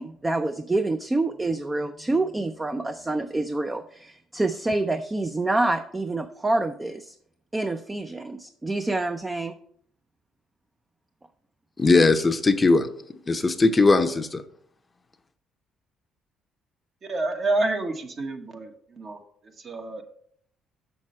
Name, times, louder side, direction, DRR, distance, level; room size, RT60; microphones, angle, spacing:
voice 1, 0.0-7.2 7.5-9.5, right 2 dB, 15° right, 8 dB, 0.5 m, -27 dB
voice 2, 11.8-12.9 13.3-14.4, left 3 dB, 25° left, 9 dB, 0.6 m, -19 dB
voice 3, 17.1-20.0, right 2 dB, 45° right, 5 dB, 1.2 m, -29 dB
6.5 x 6.2 x 4.3 m, 0.65 s
cardioid pair, 85°, 0 cm